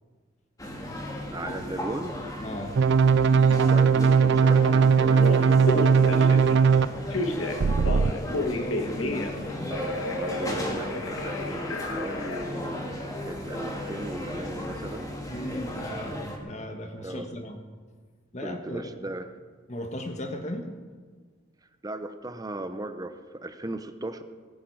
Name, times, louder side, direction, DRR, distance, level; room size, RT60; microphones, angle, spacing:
sound 1, 0.6-16.4, left 1 dB, 20° left, 1.9 m, -35 dB
voice 1, 1.3-2.2 3.7-6.5 9.7-15.1 17.0-17.3 18.4-19.3 21.8-24.2, right 1 dB, 20° right, 9 dB, 0.7 m, -37 dB
voice 2, 2.4-2.8 8.0-9.7 15.3-17.6 18.3-19.1 19.7-20.7, left 1 dB, 35° left, 5 dB, 1.6 m, -37 dB
sound 2, 2.8-6.9 7.6-8.1, right 5 dB, 60° right, 0.4 m, -19 dB
Telephone, 4.6-4.7 5.1-6.5 7.1-9.4 9.7-12.5, left 2 dB, 80° left, 1.5 m, -31 dB
19.0 x 10.5 x 4.7 m, 1.5 s
head